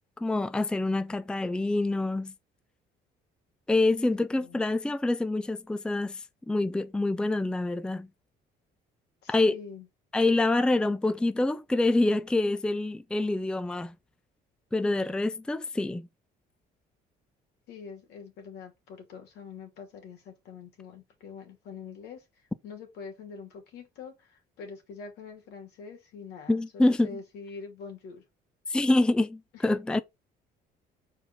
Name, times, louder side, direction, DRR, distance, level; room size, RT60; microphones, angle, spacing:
voice 1, 0.2-2.3 3.7-6.2 6.5-8.1 9.3-9.6 10.1-13.9 14.7-16.1 26.5-27.1 28.7-30.0, left 2 dB, 5° left, 0.4 m, -26 dB
voice 2, 4.3-4.6 9.2-9.9 14.8-15.1 17.7-22.3 22.6-28.2 29.7-29.8, left 5 dB, 85° left, 2.7 m, -45 dB
5.6 x 4.5 x 4.0 m
cardioid pair, 110°, 17 cm